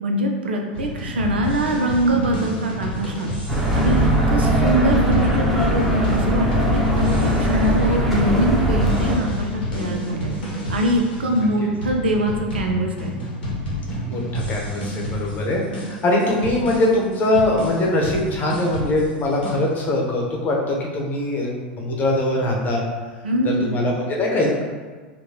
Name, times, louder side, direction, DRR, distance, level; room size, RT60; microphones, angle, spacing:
voice 1, 0.0-3.3 3.7-6.5 6.7-10.3 10.7-13.3 23.2-23.7, right 1 dB, 90° right, 2 dB, 0.4 m, -23 dB
sound 1, 0.7-19.5, left 1 dB, 85° left, 1.1 m, -30 dB
sound 2, 3.5-9.2, right 1 dB, 5° right, 0.8 m, -20 dB
voice 2, 14.1-22.8 23.7-24.6, left 1 dB, 35° left, -1 dB, 0.8 m, -22 dB
3.9 x 2.2 x 2.8 m, 1.4 s
hypercardioid pair, 95°, 5 cm